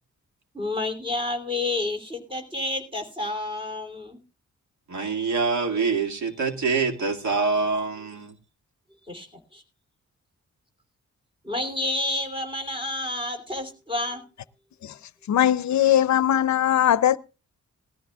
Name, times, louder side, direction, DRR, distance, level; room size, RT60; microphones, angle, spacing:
voice 1, 0.5-4.2 9.1-9.3 9.5-9.6 11.4-14.2, left 2 dB, 15° right, 3.2 m, -29 dB
voice 2, 4.9-8.3, right 4 dB, 75° right, 2.2 m, -25 dB
voice 3, 15.3-17.2, left 11 dB, 70° left, 0.6 m, -20 dB
19.0 x 14.0 x 2.3 m
wide cardioid pair, 150°, 29 cm